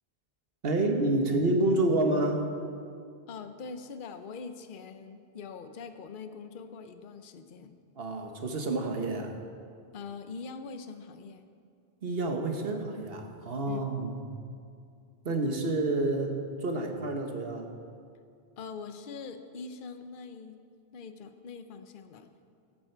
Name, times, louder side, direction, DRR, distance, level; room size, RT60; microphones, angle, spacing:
voice 1, 0.6-2.5 7.9-9.3 12.0-14.1 15.2-17.7, right 2 dB, 65° right, 4 dB, 1.4 m, -28 dB
voice 2, 3.3-7.8 9.9-11.4 13.7-13.8 18.6-20.6 20.9-22.3, left 5 dB, 55° left, 8 dB, 0.9 m, -43 dB
14.5 x 12.5 x 4.6 m, 2.4 s
omnidirectional pair, 1.1 m